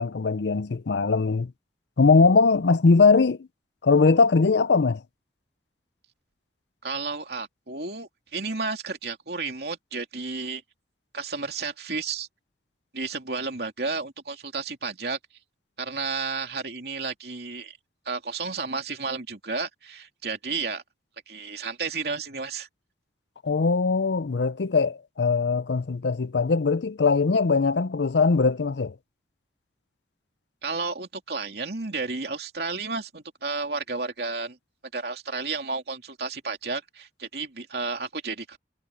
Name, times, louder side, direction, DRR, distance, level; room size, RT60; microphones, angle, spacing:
voice 1, 0.0-1.5 2.0-3.5 3.8-5.0 23.4-28.9, left 4 dB, 75° left, 0.6 m, -21 dB
voice 2, 6.8-10.6 11.1-12.3 12.9-15.2 15.8-17.8 18.0-20.8 21.3-22.7 30.6-34.6 34.9-38.6, right 4 dB, 60° right, 2.9 m, -32 dB
head